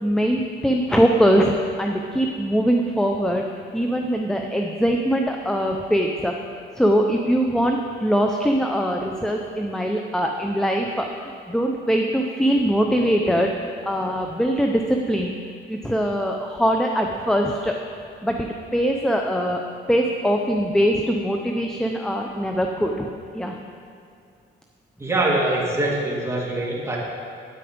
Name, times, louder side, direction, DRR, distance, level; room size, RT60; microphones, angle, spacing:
voice 1, 0.0-3.4 3.7-6.3 6.8-13.5 13.8-15.4 15.7-17.7 18.2-19.6 19.9-23.6, equal, 5° left, 2 dB, 0.7 m, -22 dB
voice 2, 25.0-27.0, right 2 dB, 15° right, -3 dB, 2.4 m, -23 dB
9.4 x 9.1 x 5.2 m, 2.4 s
cardioid pair, 90°, 20 cm